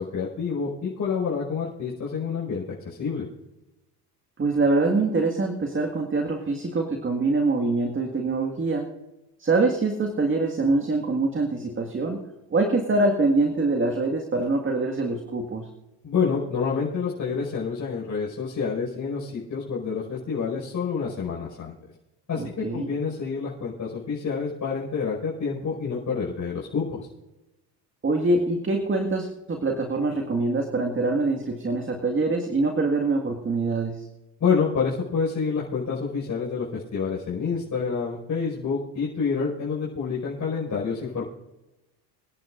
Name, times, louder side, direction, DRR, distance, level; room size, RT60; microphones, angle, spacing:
voice 1, 0.0-3.3 16.0-21.8 22.3-27.1 34.4-41.3, left 5 dB, 35° left, -5 dB, 5.4 m, -28 dB
voice 2, 4.4-8.9 9.4-12.2 12.5-15.7 22.4-22.9 28.0-34.1, right 3 dB, 25° right, 3 dB, 1.9 m, -24 dB
26.5 x 10.5 x 2.6 m, 0.99 s
hypercardioid pair, 80°, 49 cm